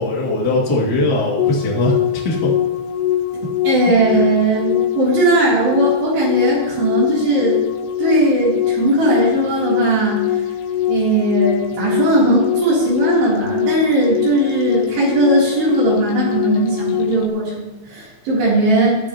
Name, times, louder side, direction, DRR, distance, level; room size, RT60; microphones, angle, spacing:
voice 1, 0.0-2.5 4.1-4.2, left 2 dB, 30° left, -4 dB, 2.2 m, -20 dB
sound 1, 1.4-17.3, left 11 dB, 90° left, 2.8 m, -22 dB
voice 2, 3.6-7.6 8.0-10.2 10.9-19.0, right 2 dB, 75° right, -7 dB, 5.4 m, -18 dB
15.0 x 11.0 x 3.0 m, 1.1 s
omnidirectional pair, 4.8 m